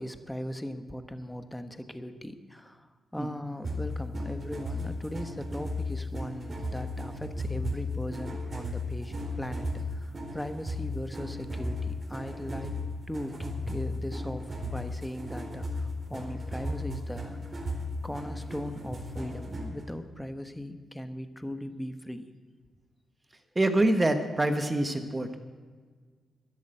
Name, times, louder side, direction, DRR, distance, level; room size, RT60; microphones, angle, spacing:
voice 1, 0.0-12.8 13.1-17.8 18.0-22.2, equal, 5° left, 9 dB, 1.2 m, -39 dB
sound 1, 3.6-19.8, left 1 dB, 45° right, 4.2 m, -35 dB
voice 2, 23.5-25.4, right 1 dB, 20° right, 7 dB, 1.3 m, -25 dB
13.0 x 10.5 x 7.9 m, 1.5 s
cardioid pair, 70°, 0 cm